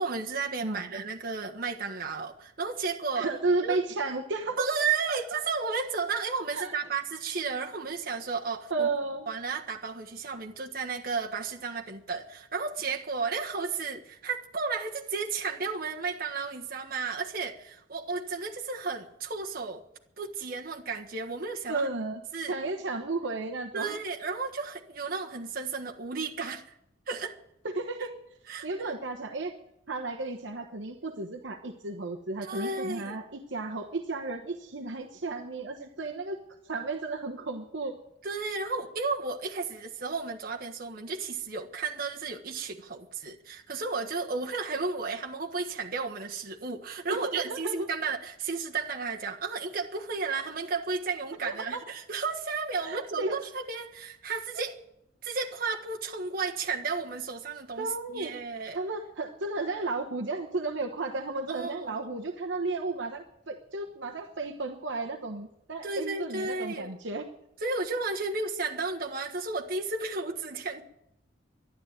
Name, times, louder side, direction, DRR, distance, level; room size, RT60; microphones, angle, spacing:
voice 1, 0.0-3.3 3.6-3.8 4.6-8.9 9.3-19.8 20.2-21.9 22.3-22.5 23.7-26.7 27.1-27.4 28.5-28.9 32.4-33.2 38.2-54.8 55.2-58.8 61.5-62.0 65.8-66.9 67.6-70.8, right 4 dB, 50° right, 1.5 m, -33 dB
voice 2, 0.6-1.0 3.2-4.7 5.1-5.2 6.5-6.7 8.7-9.3 21.7-24.0 27.6-28.1 28.6-29.6 29.9-36.4 36.6-37.9 47.1-47.9 51.4-51.8 52.8-53.4 57.8-58.3 58.7-67.3, right 3 dB, 70° right, 1.1 m, -33 dB
12.0 x 11.0 x 9.1 m
head